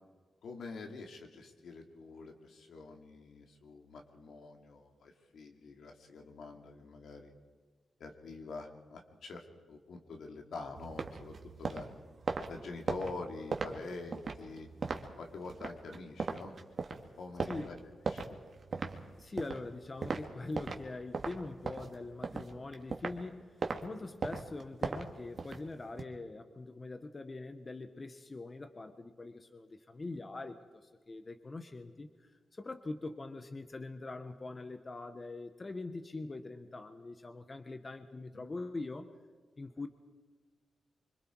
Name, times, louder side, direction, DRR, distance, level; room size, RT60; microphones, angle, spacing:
voice 1, 0.4-7.3 8.0-11.9 12.5-14.7 15.2-16.6 17.2-17.8 18.1-18.4 38.3-38.4, left 3 dB, 80° left, 3 dB, 2.8 m, -46 dB
sound 1, 10.7-20.9 21.1-23.2 23.6-23.8 24.2-26.0, right 4 dB, 45° right, 2.0 m, -38 dB
voice 2, 19.2-32.1 32.5-39.1 39.6-39.9, left 2 dB, 30° left, 8 dB, 1.2 m, -43 dB
25.5 x 25.0 x 4.7 m, 1.5 s
wide cardioid pair, 130°, 0 cm